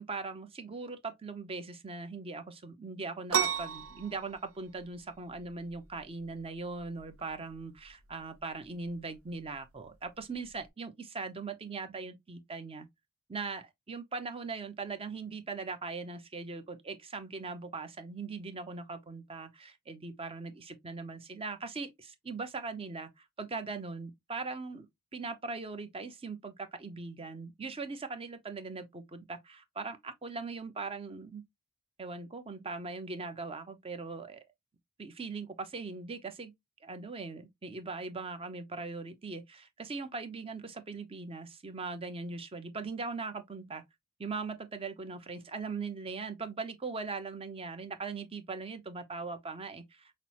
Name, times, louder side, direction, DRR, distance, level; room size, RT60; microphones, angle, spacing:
voice 1, 0.0-12.9 13.3-23.1 23.4-24.9 25.1-31.4 32.0-34.4 35.0-36.5 36.8-43.8 44.2-50.1, right 4 dB, 25° right, 0.6 m, -40 dB
sound 1, 3.3-10.7, right 8 dB, 75° right, 0.6 m, -38 dB
5.8 x 2.0 x 2.8 m
head